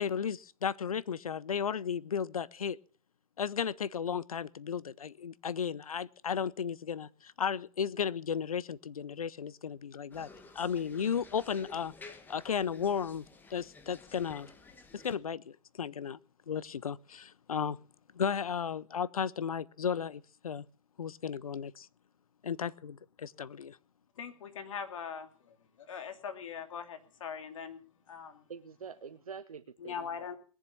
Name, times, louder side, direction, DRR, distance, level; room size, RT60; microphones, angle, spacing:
voice 1, 0.0-2.8 3.4-10.3 10.5-11.9 12.3-13.2 13.5-14.5 14.9-16.2 16.5-17.8 18.1-20.7 21.0-21.9 22.4-23.8, left 7 dB, 80° left, 20 dB, 0.7 m, -34 dB
sound 1, 10.1-15.2, left 3 dB, 10° left, 1.6 m, -53 dB
voice 2, 24.2-25.3 25.8-27.8 28.1-28.4 29.8-30.4, left 7 dB, 65° left, 7 dB, 2.7 m, -41 dB
voice 3, 28.5-30.3, right 6 dB, 80° right, 9 dB, 0.9 m, -46 dB
20.5 x 7.4 x 7.0 m, 0.41 s
hypercardioid pair, 120°, 18 cm